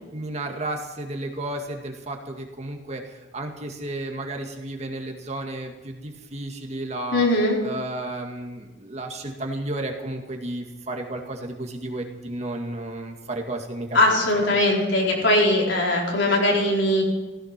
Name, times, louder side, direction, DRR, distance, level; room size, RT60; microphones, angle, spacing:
voice 1, 0.1-7.3 7.6-14.6, right 1 dB, 35° right, 3 dB, 2.0 m, -33 dB
voice 2, 7.1-7.6 13.9-17.0, left 1 dB, 75° left, -2 dB, 4.3 m, -20 dB
16.0 x 15.0 x 6.0 m, 1.1 s
head